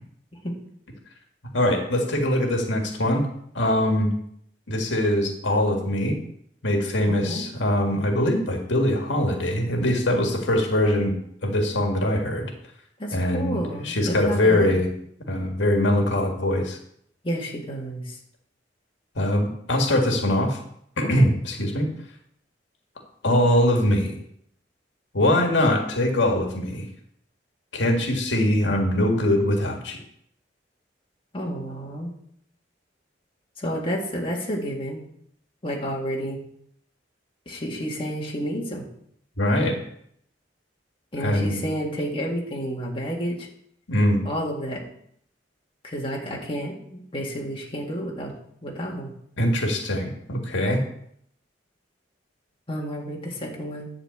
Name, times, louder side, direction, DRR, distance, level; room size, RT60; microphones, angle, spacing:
voice 1, 1.5-3.3 3.5-4.1 4.7-6.2 6.6-11.1 11.4-12.5 13.1-14.9 15.3-16.8 19.2-20.6 21.0-21.9 23.2-24.2 25.1-26.9 27.7-30.0 39.4-39.8 41.2-41.6 43.9-44.2 49.4-50.8, left 1 dB, 90° left, 2 dB, 1.9 m, -22 dB
voice 2, 7.1-7.4 13.0-14.8 17.2-18.2 21.2-21.3 31.3-32.1 33.6-35.0 35.6-36.4 37.5-38.8 41.1-43.5 44.2-44.9 45.8-48.3 48.6-49.1 52.7-53.9, equal, 30° left, -2 dB, 1.9 m, -30 dB
10.5 x 4.3 x 7.8 m, 0.69 s
head